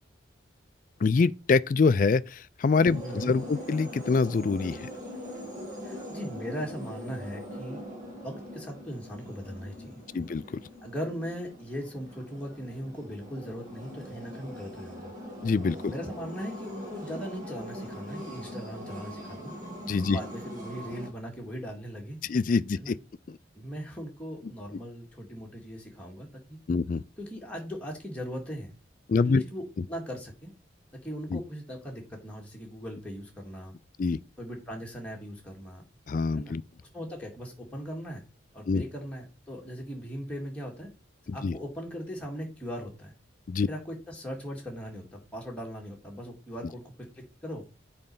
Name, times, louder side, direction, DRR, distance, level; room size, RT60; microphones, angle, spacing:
voice 1, 1.0-4.9 10.1-10.4 15.4-15.9 19.9-20.2 22.3-23.0 23.3-23.4 26.7-27.0 29.1-29.4 31.3-31.4 34.0-34.2 36.1-36.6 38.7-38.8 41.3-41.6 43.5-43.7, left 4 dB, 45° left, 0.3 m, -25 dB
sound 1, 2.7-21.1, equal, 40° right, 2.3 m, -42 dB
voice 2, 3.0-3.3 5.8-7.8 8.2-10.0 10.8-15.1 15.9-19.5 20.0-22.2 22.8-22.9 23.5-26.6 27.2-28.7 29.1-30.5 30.9-33.7 34.4-35.8 36.3-36.5 36.9-38.2 38.5-40.9 41.3-43.1 43.7-47.7, equal, 5° left, 1.9 m, -39 dB
7.6 x 4.3 x 5.5 m
head